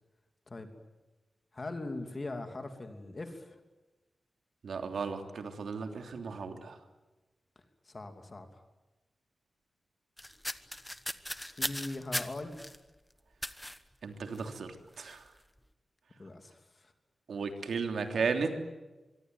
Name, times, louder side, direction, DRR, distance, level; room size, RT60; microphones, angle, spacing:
voice 1, 1.5-3.6 7.8-8.6 11.5-12.7 16.2-16.9, left 2 dB, 30° left, 6 dB, 2.9 m, -41 dB
voice 2, 4.6-6.8 14.0-15.2 17.3-18.6, right 5 dB, 80° right, 6 dB, 3.2 m, -35 dB
sound 1, 10.2-12.8 13.4-13.8 14.3-14.6 14.9-15.2, equal, 5° left, 1.1 m, -38 dB
25.0 x 24.0 x 9.6 m, 1.1 s
wide cardioid pair, 170°, 0 cm